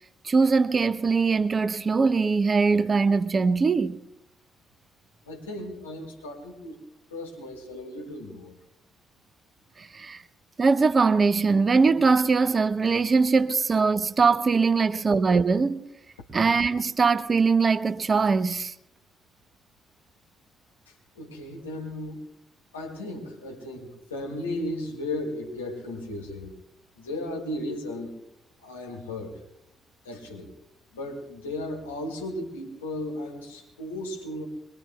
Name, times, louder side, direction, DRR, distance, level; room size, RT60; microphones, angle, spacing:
voice 1, 0.2-4.0 9.8-10.2 10.6-15.8 16.3-18.7, right 4 dB, 35° right, 0.7 m, -22 dB
voice 2, 5.2-6.8 7.1-8.6 21.2-22.2 22.7-26.6 27.0-28.1 28.6-29.4 30.0-30.5 30.9-34.5, left 1 dB, 85° left, 2.0 m, -35 dB
23.0 x 22.5 x 2.3 m
figure-of-eight pair, 45°, 0 cm